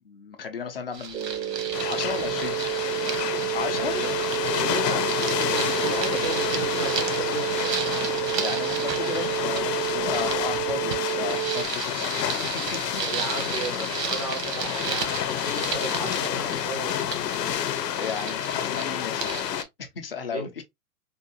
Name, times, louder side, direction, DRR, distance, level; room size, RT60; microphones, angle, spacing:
voice 1, 0.1-2.6 3.5-3.9 8.3-13.0 17.9-19.4 20.0-20.6, left 6 dB, 40° left, 0.4 m, -35 dB
sound 1, 0.9-19.7, right 6 dB, 85° right, 1.1 m, -34 dB
sound 2, 1.1-11.7, right 15 dB, 70° right, 0.6 m, -30 dB
sound 3, 1.7-19.6, left 10 dB, 90° left, 0.7 m, -29 dB
voice 2, 3.6-4.2 4.6-7.8 13.0-15.2 15.5-17.1 20.3-20.6, right 3 dB, 25° right, 0.3 m, -35 dB
3.4 x 2.3 x 2.6 m
hypercardioid pair, 170°, 47 cm